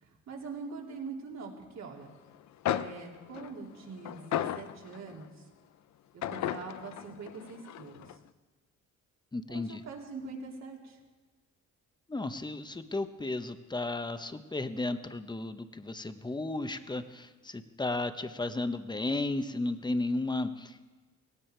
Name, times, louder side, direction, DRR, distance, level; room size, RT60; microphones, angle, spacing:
voice 1, 0.0-2.1 2.7-5.5 6.1-8.2 9.5-11.0, right 4 dB, 60° right, 0 dB, 3.3 m, -43 dB
sound 1, 2.3-2.4 2.7-5.3 6.2-8.2, left 11 dB, 65° left, 0.7 m, -35 dB
voice 2, 9.3-9.8 12.1-20.9, left 2 dB, 15° left, 9 dB, 1.0 m, -34 dB
18.0 x 17.0 x 4.6 m, 1.3 s
cardioid pair, 90°, 30 cm